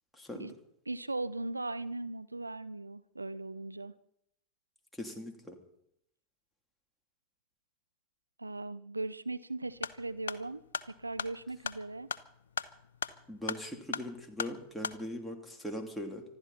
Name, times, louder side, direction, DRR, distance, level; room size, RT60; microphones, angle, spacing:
voice 1, 0.1-0.5 4.9-5.6 13.3-16.2, equal, ahead, 0 dB, 3.3 m, -40 dB
voice 2, 0.9-3.9 8.4-12.1, right 2 dB, 85° right, 14 dB, 0.6 m, -38 dB
sound 1, 9.7-15.0, left 7 dB, 70° left, 0.7 m, -40 dB
25.5 x 12.0 x 4.4 m, 0.75 s
figure-of-eight pair, 85°, 0 cm